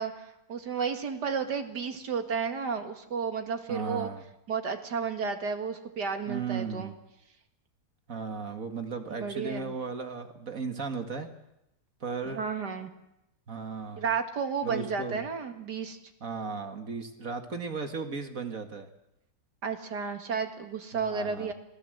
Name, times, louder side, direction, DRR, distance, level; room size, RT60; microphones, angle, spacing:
voice 1, 0.0-4.1 4.5-6.9 9.1-9.7 12.3-12.9 14.0-16.0 19.6-21.5, right 6 dB, 90° right, 6 dB, 2.6 m, -32 dB
voice 2, 3.7-4.2 6.3-6.9 8.1-11.3 12.0-12.4 13.5-14.1 14.6-15.2 16.2-18.9 20.9-21.5, right 5 dB, 55° right, 6 dB, 2.2 m, -35 dB
27.0 x 18.0 x 7.9 m, 0.87 s
omnidirectional pair, 1.7 m